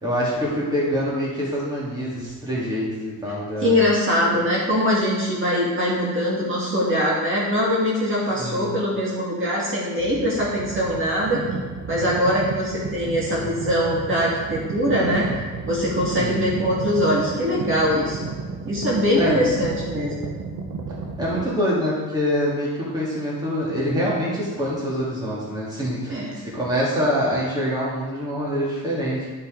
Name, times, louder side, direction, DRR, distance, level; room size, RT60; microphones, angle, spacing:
voice 1, 0.0-3.9 8.4-8.7 16.2-16.4 19.2-19.4 21.2-29.3, equal, 15° right, -7 dB, 2.0 m, -25 dB
voice 2, 3.6-11.4 11.9-15.3 15.7-18.2 18.6-20.1 26.1-26.4, equal, 40° right, -6 dB, 1.9 m, -22 dB
sound 1, 10.0-21.4, right 4 dB, 70° right, 1.0 m, -33 dB
11.0 x 5.6 x 3.8 m, 1.4 s
wide cardioid pair, 175°, 31 cm